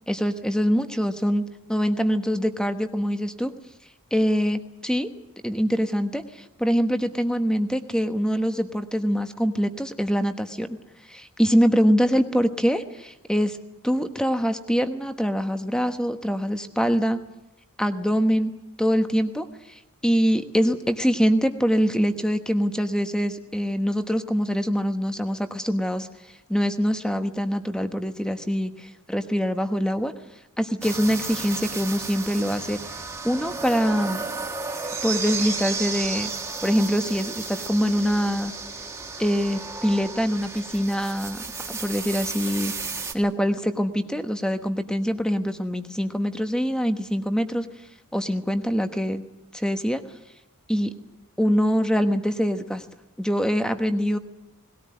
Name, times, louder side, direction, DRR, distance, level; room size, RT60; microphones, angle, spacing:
voice 1, 0.1-1.4 1.7-3.5 4.1-5.1 5.4-10.8 11.1-13.6 13.8-17.2 17.8-18.5 18.8-26.1 26.5-30.1 30.6-32.8 33.2-34.2 35.0-36.3 36.6-38.5 39.2-42.7 43.1-47.7 48.1-49.2 49.5-50.0 50.7-50.9 51.4-52.8 53.2-54.2, equal, 5° left, 8 dB, 1.1 m, -24 dB
sound 1, 30.8-43.1, right 4 dB, 10° right, 1.7 m, -33 dB
20.0 x 17.5 x 9.5 m, 0.92 s
head